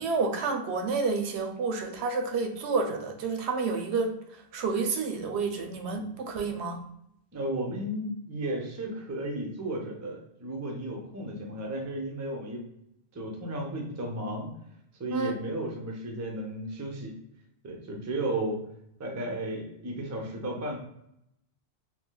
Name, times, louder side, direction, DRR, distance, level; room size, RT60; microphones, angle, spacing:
voice 1, 0.0-4.1 4.5-6.8 15.1-15.4, right 4 dB, 80° right, 4 dB, 0.8 m, -29 dB
voice 2, 7.3-12.6 13.1-14.5 15.0-17.2 17.6-18.6 19.0-20.8, right 1 dB, 25° right, 1 dB, 0.4 m, -34 dB
3.1 x 2.7 x 2.2 m, 0.78 s
omnidirectional pair, 1.1 m